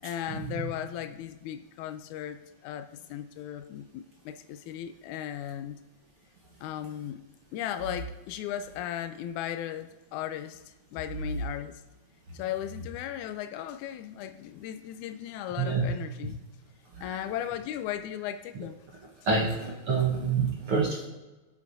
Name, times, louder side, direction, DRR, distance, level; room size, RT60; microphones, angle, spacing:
voice 1, 0.0-5.8 6.6-7.2 7.5-11.8 12.3-16.4 17.0-18.8, left 11 dB, 90° left, 8 dB, 1.7 m, -36 dB
voice 2, 19.2-21.0, right 5 dB, 60° right, -2 dB, 1.5 m, -27 dB
20.0 x 8.0 x 2.7 m, 1.1 s
omnidirectional pair, 4.1 m